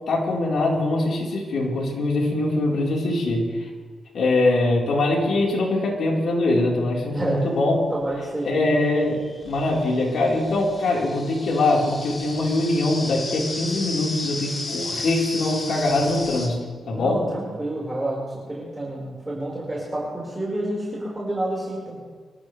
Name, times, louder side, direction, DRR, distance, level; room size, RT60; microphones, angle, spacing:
voice 1, 0.1-3.4 4.1-7.7 8.4-16.6 16.9-17.2, left 2 dB, 70° left, -3 dB, 4.6 m, -22 dB
voice 2, 7.1-7.4 7.9-8.6 16.9-18.2 18.5-22.0, right 1 dB, 15° right, -5 dB, 5.3 m, -29 dB
sound 1, 8.0-8.1 9.0-16.5, left 2 dB, 40° left, 4.4 m, -34 dB
26.0 x 14.0 x 3.5 m, 1.5 s
cardioid pair, 80°, 0 cm